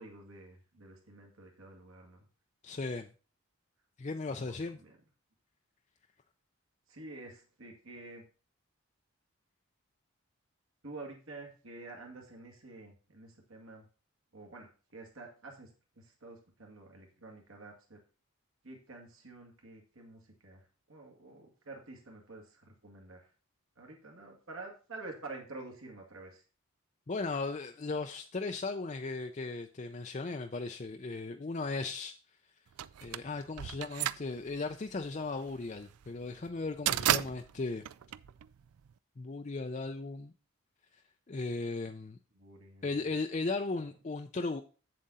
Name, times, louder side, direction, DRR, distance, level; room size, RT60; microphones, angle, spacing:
voice 1, 0.0-2.3 4.3-4.9 6.9-8.2 10.8-13.9 14.3-15.7 16.0-18.0 18.6-23.3 23.8-26.4 42.3-43.1, right 2 dB, 70° right, 2.1 m, -49 dB
voice 2, 2.6-3.1 4.0-4.8 27.1-32.1 33.0-37.8 39.2-40.3 41.3-42.2 42.8-44.6, left 3 dB, 30° left, 0.5 m, -36 dB
sound 1, 32.8-38.9, right 12 dB, 90° right, 0.4 m, -34 dB
7.8 x 7.5 x 4.1 m
head